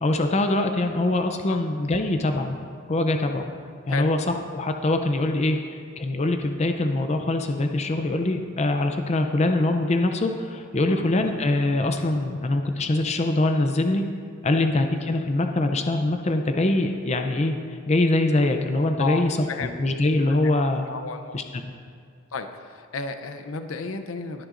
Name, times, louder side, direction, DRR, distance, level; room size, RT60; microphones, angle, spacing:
voice 1, 0.0-2.5 2.9-3.5 3.9-5.6 6.0-14.0 14.4-20.9 21.3-21.6, left 2 dB, 35° left, 6 dB, 0.5 m, -23 dB
voice 2, 19.0-19.7 20.3-20.5 20.9-21.6 22.3-24.4, left 4 dB, 85° left, 8 dB, 0.7 m, -33 dB
20.5 x 7.7 x 2.6 m, 2.2 s
head